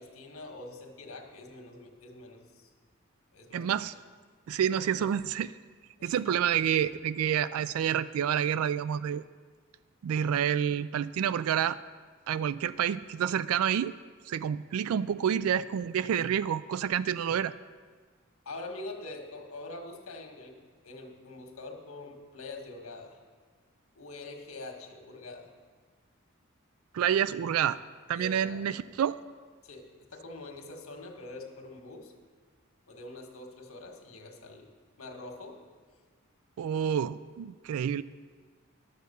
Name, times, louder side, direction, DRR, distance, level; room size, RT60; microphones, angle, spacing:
voice 1, 0.0-2.7 3.3-3.7 4.8-5.1 6.0-6.4 18.4-20.6 20.8-23.2 23.9-25.5 28.1-28.6 29.6-32.1 32.9-34.7 35.0-35.6, left 2 dB, 80° left, 3 dB, 1.6 m, -44 dB
voice 2, 3.5-3.9 4.5-5.5 6.0-9.2 10.0-11.8 12.3-13.9 14.3-17.5 26.9-27.8 28.1-29.2 36.6-38.0, right 9 dB, 85° right, 17 dB, 0.3 m, -28 dB
11.5 x 6.6 x 6.8 m, 1.5 s
head